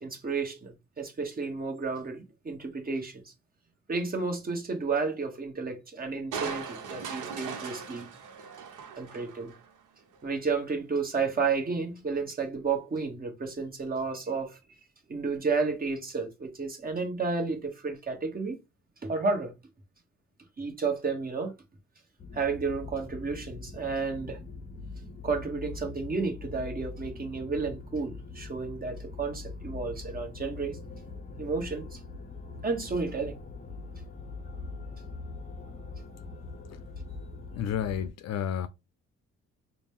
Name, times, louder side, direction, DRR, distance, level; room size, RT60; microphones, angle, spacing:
voice 1, 0.0-3.2 3.9-8.1 9.0-9.5 10.2-14.6 15.1-18.6 19.0-19.5 20.6-21.5 22.3-24.4 25.2-30.8 31.4-32.0 32.6-33.3, right 4 dB, 30° right, 1.2 m, -32 dB
Crushing, 6.3-9.7 10.1-10.2, right 6 dB, 85° right, 0.9 m, -39 dB
sound 1, 22.2-38.1, left 3 dB, 25° left, 0.7 m, -42 dB
voice 2, 37.5-38.7, left 8 dB, 60° left, 0.4 m, -31 dB
4.0 x 2.2 x 3.5 m
cardioid pair, 90°, 30 cm